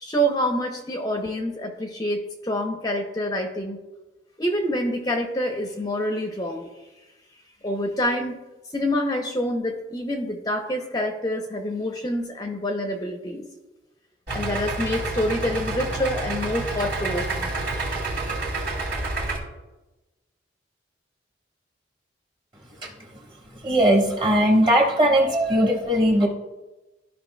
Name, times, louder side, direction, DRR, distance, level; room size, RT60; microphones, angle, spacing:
voice 1, 0.0-3.8 4.4-6.7 7.6-8.4 8.7-13.5 14.3-17.5, equal, 20° left, 3 dB, 0.6 m, -27 dB
Idling, 14.3-19.4, right 2 dB, 60° right, 2.1 m, -29 dB
voice 2, 23.6-26.3, equal, 25° right, -1 dB, 1.4 m, -19 dB
13.5 x 5.3 x 2.2 m, 1.1 s
head